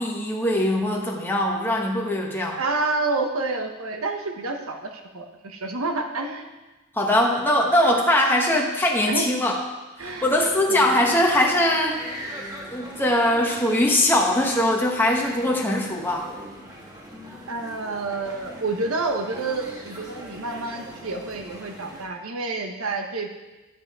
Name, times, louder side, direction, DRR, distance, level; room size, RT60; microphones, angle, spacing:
voice 1, 0.0-2.6 6.9-9.5 10.0-12.0 12.7-16.3, left 1 dB, 10° left, -1 dB, 1.1 m, -21 dB
voice 2, 2.6-6.5 9.1-9.3 10.0-10.2 10.7-10.9 17.5-23.3, right 3 dB, 75° right, 4 dB, 1.2 m, -28 dB
sound 1, 10.0-22.0, equal, 15° right, 1.6 m, -41 dB
10.0 x 7.7 x 4.8 m, 1.1 s
head